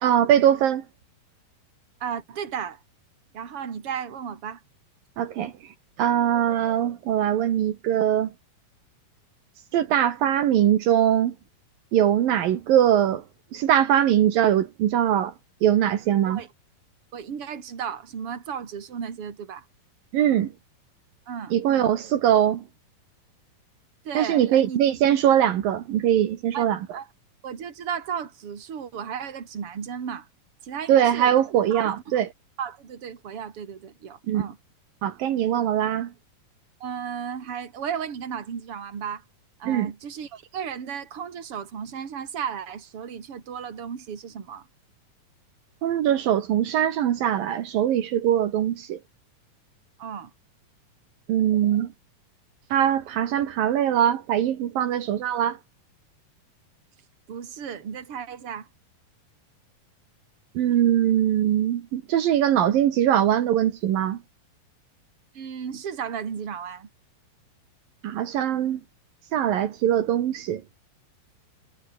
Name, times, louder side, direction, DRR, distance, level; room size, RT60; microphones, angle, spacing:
voice 1, 0.0-0.8 5.2-5.5 6.0-8.3 9.7-11.3 11.9-13.2 13.5-15.3 15.6-16.4 20.1-20.5 21.5-22.6 24.1-26.8 30.9-32.3 34.3-34.5 35.0-36.1 39.7-39.9 45.8-49.0 51.3-51.9 52.7-55.6 60.5-64.2 68.0-68.8 69.3-70.6, right 10 dB, 75° right, 3.3 m, -22 dB
voice 2, 2.0-2.8 3.3-4.6 16.3-16.5 17.1-19.6 21.3-21.6 24.0-24.8 26.5-27.1 27.4-30.3 30.6-31.3 31.7-31.9 32.6-34.6 36.8-39.2 39.6-44.7 50.0-50.3 57.3-58.7 65.3-66.9, right 7 dB, 40° right, 3.5 m, -34 dB
omnidirectional pair, 4.2 m